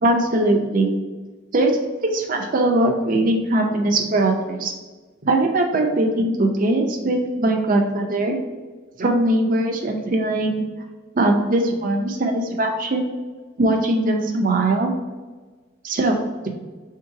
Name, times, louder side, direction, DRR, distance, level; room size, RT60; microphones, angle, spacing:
voice 1, 0.0-0.9 1.5-1.7 2.0-4.7 5.2-8.4 9.0-10.6 11.1-13.1 13.6-14.9 15.8-16.2, right 2 dB, 45° right, 3 dB, 0.6 m, -20 dB
3.6 x 2.8 x 4.6 m, 1.3 s
head